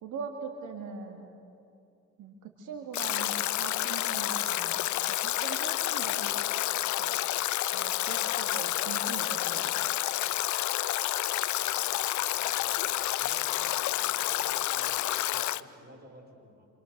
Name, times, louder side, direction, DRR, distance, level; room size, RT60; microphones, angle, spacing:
voice 1, 0.0-1.3 2.2-4.8 5.1-6.4 7.0-7.2 7.7-9.9, right 5 dB, 80° right, 2 dB, 2.4 m, -41 dB
Stream / Drip / Trickle dribble, 2.9-15.6, left 14 dB, 70° left, 0.6 m, -29 dB
voice 2, 11.3-12.8 13.2-16.7, right 2 dB, 30° right, 1 dB, 6.4 m, -54 dB
28.0 x 27.0 x 6.8 m, 2.7 s
cardioid pair, 90°, 30 cm